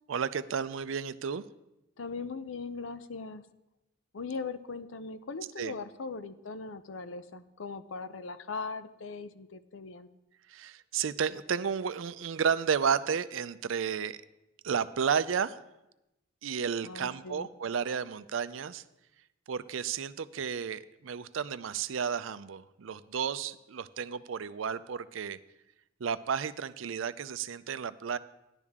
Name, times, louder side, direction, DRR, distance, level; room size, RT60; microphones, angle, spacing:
voice 1, 0.1-1.4 5.6-5.7 10.5-14.2 14.6-15.6 16.4-18.8 19.5-25.4 26.0-28.2, right 7 dB, 80° right, 14 dB, 0.5 m, -32 dB
voice 2, 2.0-3.4 4.1-10.1 16.8-17.5, left 4 dB, 85° left, 12 dB, 0.6 m, -39 dB
13.5 x 11.0 x 3.6 m, 0.94 s
head